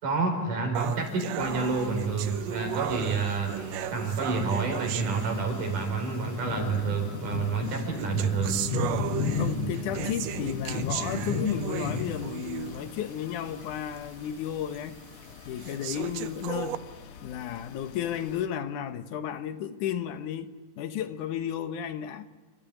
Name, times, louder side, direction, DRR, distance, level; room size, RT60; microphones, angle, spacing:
voice 1, 0.0-3.6 3.9-8.6, right 4 dB, 85° right, 6.2 m, -29 dB
sound 1, 0.8-5.9 6.8-6.9 7.6-12.9 13.3-13.4 14.0-14.1 14.7-14.8 15.6-16.8, right 11 dB, 70° right, 1.8 m, -35 dB
sound 2, 1.4-18.5, left 5 dB, 55° left, 1.8 m, -37 dB
voice 2, 9.4-15.0 15.5-16.8 17.2-22.3, left 10 dB, 75° left, 2.6 m, -33 dB
29.5 x 14.0 x 10.0 m
omnidirectional pair, 3.6 m